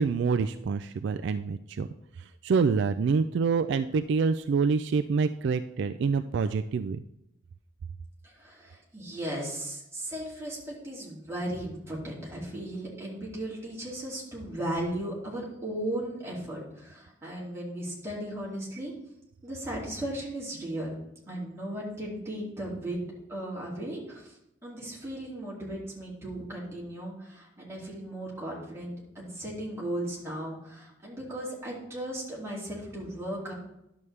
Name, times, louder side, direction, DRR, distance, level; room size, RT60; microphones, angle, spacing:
voice 1, 0.0-1.9 2.2-7.0, right 5 dB, 60° right, 10 dB, 0.3 m, -26 dB
voice 2, 8.2-18.9 19.4-20.9 21.3-23.0 23.3-24.4 24.6-33.5, right 1 dB, 15° right, -5 dB, 2.5 m, -36 dB
11.0 x 7.0 x 3.3 m, 0.84 s
head